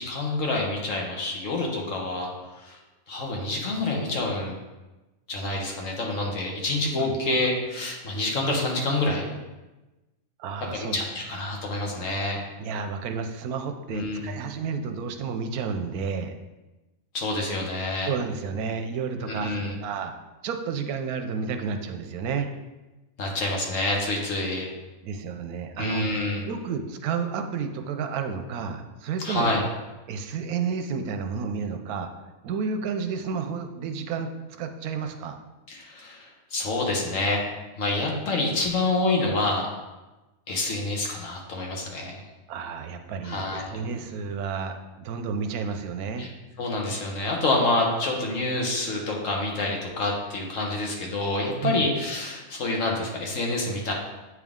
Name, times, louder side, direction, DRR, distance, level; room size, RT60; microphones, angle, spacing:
voice 1, 0.0-2.8 3.1-4.5 5.3-9.3 10.7-12.4 13.9-14.4 17.1-18.1 19.2-19.8 23.2-24.7 25.8-26.4 29.2-29.6 35.7-37.4 37.8-39.7 40.5-42.2 43.2-44.0 46.2-46.3 46.6-53.9, left 2 dB, 65° left, -1 dB, 1.4 m, -27 dB
voice 2, 10.4-11.0 12.6-16.3 18.1-20.1 20.4-22.5 25.0-26.0 26.4-29.5 30.1-32.1 32.4-34.3 34.6-35.4 42.5-46.3 51.6-51.8, right 5 dB, 85° right, 6 dB, 1.1 m, -31 dB
8.1 x 3.6 x 3.6 m, 1.1 s
omnidirectional pair, 1.5 m